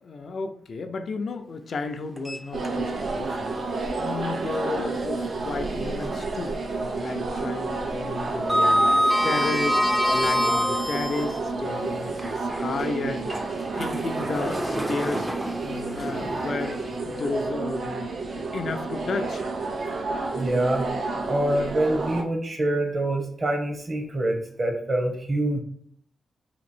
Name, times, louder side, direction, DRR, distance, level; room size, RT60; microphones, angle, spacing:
voice 1, 0.0-3.5 4.0-6.6 7.0-8.9 9.2-9.8 10.1-13.4 13.7-15.3 15.6-18.1 18.4-19.4, left 3 dB, 60° left, 7 dB, 0.4 m, -32 dB
Sliding door, 2.2-3.1 3.5-3.6 5.3-6.4 6.7-7.0 7.3-11.4 12.1-17.3, equal, 15° right, 0.4 m, -27 dB
sound 1, 2.5-22.2, right 3 dB, 65° right, 0.5 m, -30 dB
voice 2, 5.2-5.5 20.3-20.9 21.3-25.6, right 1 dB, 40° right, 3 dB, 0.9 m, -25 dB
3.0 x 2.6 x 4.2 m, 0.62 s
cardioid pair, 70°, 0 cm